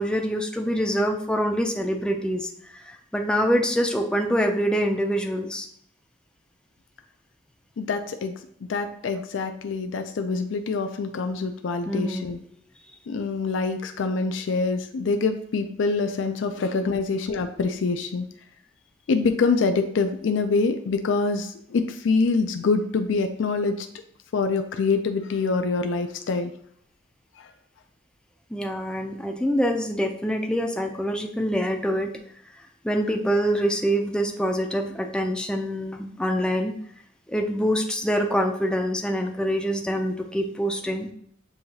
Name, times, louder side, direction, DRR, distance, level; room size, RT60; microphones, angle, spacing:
voice 1, 0.0-5.7 11.9-12.3 16.9-17.0 28.5-32.1 32.8-36.7 37.3-41.1, equal, 5° left, 2 dB, 0.4 m, -25 dB
voice 2, 7.8-8.3 8.7-12.4 13.1-18.2 19.1-23.9 24.3-26.5, left 4 dB, 75° left, 6 dB, 0.4 m, -25 dB
7.0 x 2.8 x 2.7 m, 0.67 s
head